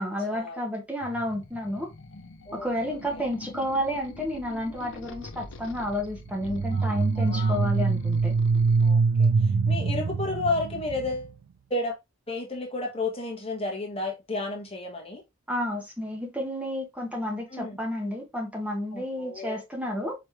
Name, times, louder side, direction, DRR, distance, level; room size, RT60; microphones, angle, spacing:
voice 1, 0.0-1.9 2.5-8.3 15.5-20.1, equal, 5° right, 1.1 m, -31 dB
sound 1, 1.0-8.9, left 2 dB, 75° left, 0.7 m, -45 dB
voice 2, 2.5-3.2 6.7-7.6 8.8-9.3 9.7-11.3 11.7-11.9 12.3-15.2 17.5-17.8 18.9-19.6, left 2 dB, 30° left, 1.2 m, -32 dB
sound 2, 6.4-11.3, right 4 dB, 85° right, 0.4 m, -24 dB
4.9 x 3.2 x 3.2 m
head